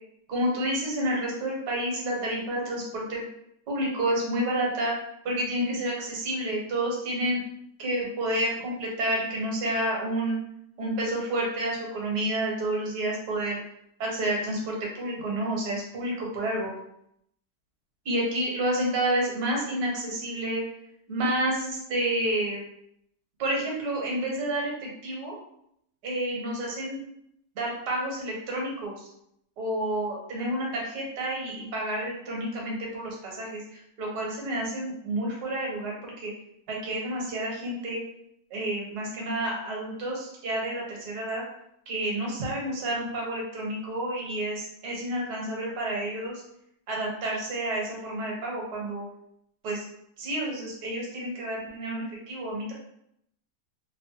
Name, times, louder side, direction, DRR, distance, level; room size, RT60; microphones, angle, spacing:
voice 1, 0.3-3.2 3.7-7.4 7.8-10.4 10.8-13.6 14.0-16.7 18.0-20.6 21.1-22.7 23.4-25.4 26.0-27.0 27.5-29.1 29.6-36.3 36.7-38.0 38.5-41.4 41.9-46.4 46.9-49.1 49.6-49.8 50.2-52.7, right 1 dB, 65° right, -2 dB, 1.3 m, -30 dB
3.4 x 2.0 x 2.7 m, 0.74 s
omnidirectional pair, 1.9 m